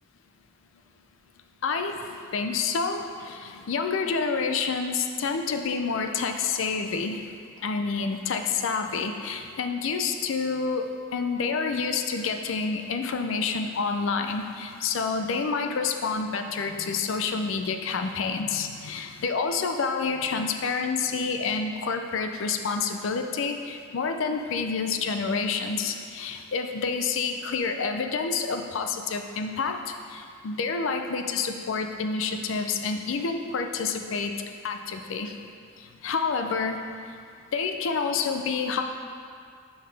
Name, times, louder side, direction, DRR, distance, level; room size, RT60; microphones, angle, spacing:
voice 1, 1.6-7.2 7.6-34.3 34.6-35.3 36.0-36.8 37.5-38.8, left 5 dB, 70° left, 6 dB, 0.4 m, -28 dB
5.6 x 5.5 x 3.3 m, 2.2 s
head